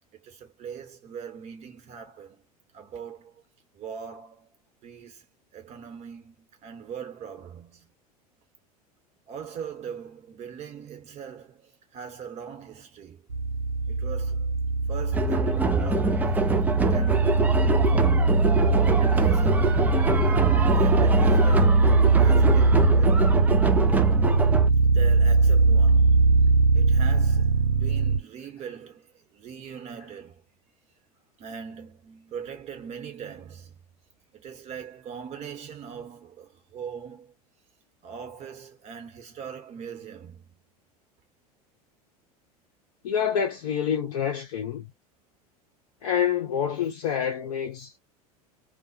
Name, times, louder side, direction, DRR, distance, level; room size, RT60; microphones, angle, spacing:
voice 1, 0.1-2.4 2.7-3.4 3.7-4.5 4.8-5.3 5.5-7.9 9.3-13.3 13.9-14.6 14.9-16.4 16.8-17.6 18.4-20.2 20.5-23.3 24.8-30.4 31.4-33.8 34.3-37.3 38.0-40.6, right 7 dB, 35° right, 1.0 m, -41 dB
sound 1, 13.3-28.2, right 3 dB, 80° right, 0.5 m, -21 dB
sound 2, 15.1-24.7, right 3 dB, 10° right, 0.3 m, -25 dB
voice 2, 43.0-44.9 46.0-48.0, left 8 dB, 60° left, 0.6 m, -27 dB
2.2 x 2.2 x 2.6 m
figure-of-eight pair, 80°, 20 cm